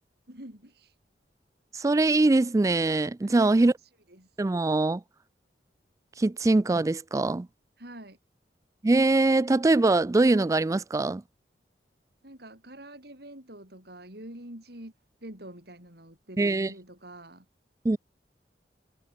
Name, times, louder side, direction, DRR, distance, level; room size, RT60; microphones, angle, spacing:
voice 1, 0.3-1.0 3.2-4.4 7.8-8.2 12.2-14.9 15.2-17.5, right 1 dB, 65° right, 6.9 m, -46 dB
voice 2, 1.7-3.7 4.4-5.0 6.2-7.5 8.8-11.2 16.4-16.7 17.8-18.0, right 2 dB, 20° right, 0.3 m, -22 dB
head